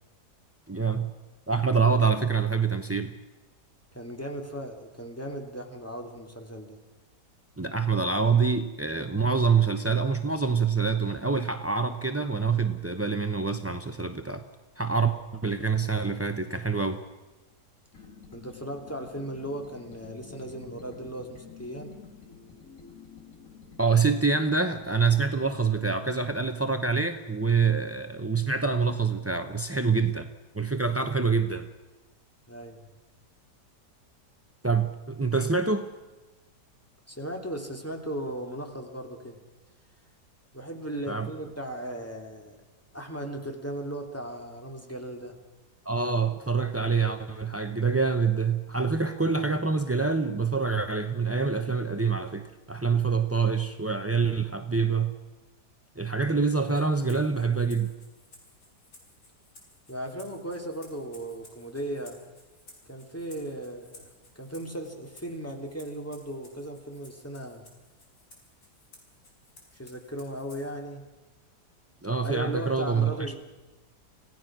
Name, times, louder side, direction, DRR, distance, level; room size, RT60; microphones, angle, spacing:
voice 1, 0.7-1.1 1.5-3.1 7.6-14.4 14.8-17.0 23.8-30.3 30.5-31.7 34.6-35.9 41.1-41.3 45.8-55.1 56.0-57.9 72.0-73.3, right 5 dB, 20° right, 8 dB, 0.4 m, -26 dB
voice 2, 3.9-6.8 18.3-21.9 32.5-32.8 37.1-39.4 40.5-42.6 42.9-45.3 56.2-56.4 59.9-62.2 62.9-67.6 69.7-71.0 72.2-73.4, right 1 dB, 10° left, 3 dB, 2.7 m, -37 dB
sound 1, 17.9-26.6, left 5 dB, 50° left, 2.6 m, -50 dB
Rattle (instrument), 56.7-70.8, left 2 dB, 80° left, 5.2 m, -56 dB
26.5 x 17.0 x 6.1 m, 1.2 s
omnidirectional pair, 1.8 m